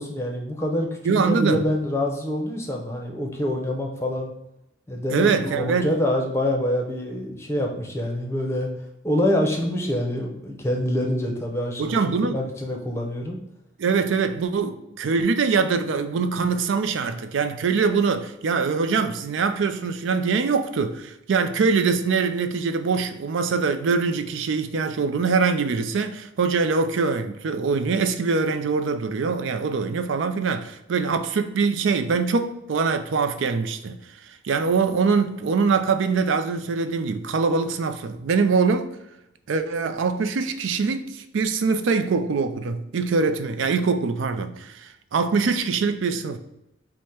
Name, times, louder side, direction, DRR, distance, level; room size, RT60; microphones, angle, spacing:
voice 1, 0.0-4.3 4.9-8.7 9.0-12.0 12.3-13.4, left 1 dB, 15° left, 0.6 m, -26 dB
voice 2, 1.0-1.7 5.1-5.9 11.8-12.4 13.8-38.9 39.5-46.4, right 5 dB, 85° right, 0.4 m, -23 dB
4.9 x 2.1 x 4.3 m
head